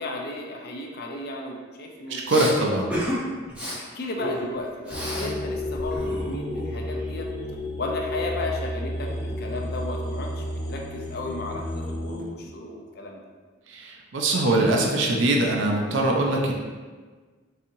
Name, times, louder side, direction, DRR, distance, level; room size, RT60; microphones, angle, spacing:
voice 1, 0.0-2.6 3.6-7.3 7.8-13.2, left 2 dB, 50° left, 1 dB, 0.5 m, -34 dB
voice 2, 2.1-2.9 13.7-16.5, right 2 dB, 75° right, 0 dB, 0.5 m, -22 dB
Respiratory sounds, 2.3-2.5 2.9-3.2 3.5-3.8 4.2-5.3 5.6-7.0, equal, 5° right, 0.6 m, -31 dB
sound 1, 4.9-12.2, left 1 dB, 90° left, 1.0 m, -31 dB
4.0 x 2.8 x 2.6 m, 1.4 s
head